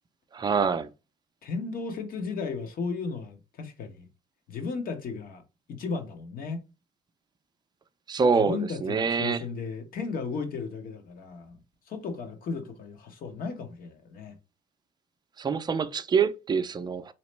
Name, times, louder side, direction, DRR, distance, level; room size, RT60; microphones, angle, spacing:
voice 1, 0.3-0.9 8.1-9.4 15.4-17.1, right 5 dB, 25° right, 0.5 m, -25 dB
voice 2, 1.4-4.1 4.5-5.4 5.7-6.6 8.4-11.6 11.9-14.4, left 4 dB, 60° left, 1.2 m, -35 dB
4.1 x 3.0 x 3.2 m
cardioid pair, 110°, 17 cm